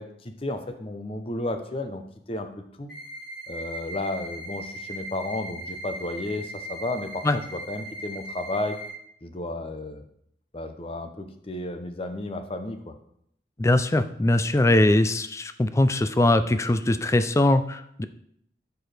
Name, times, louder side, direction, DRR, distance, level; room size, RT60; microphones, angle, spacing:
voice 1, 0.0-2.0 2.3-2.5 2.8-2.9 3.5-8.8 9.2-10.0 10.5-12.9, left 2 dB, 30° left, 7 dB, 0.7 m, -33 dB
sound 1, 2.9-8.9, right 1 dB, ahead, 3.5 m, -38 dB
voice 2, 13.6-18.1, left 1 dB, 15° left, 11 dB, 0.3 m, -21 dB
12.5 x 4.7 x 3.4 m, 0.71 s
head